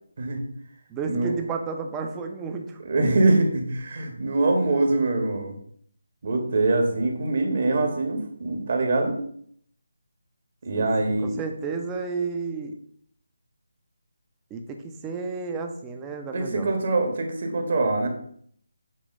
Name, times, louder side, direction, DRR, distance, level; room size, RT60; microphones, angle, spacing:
voice 1, 0.9-2.8 10.7-12.7 14.5-16.7, right 4 dB, 15° right, 4 dB, 0.7 m, -32 dB
voice 2, 2.8-5.5 6.2-9.2 10.6-11.3 16.3-18.1, right 2 dB, 50° right, 3 dB, 1.6 m, -23 dB
8.4 x 2.9 x 5.4 m, 0.63 s
figure-of-eight pair, 165°, 0 cm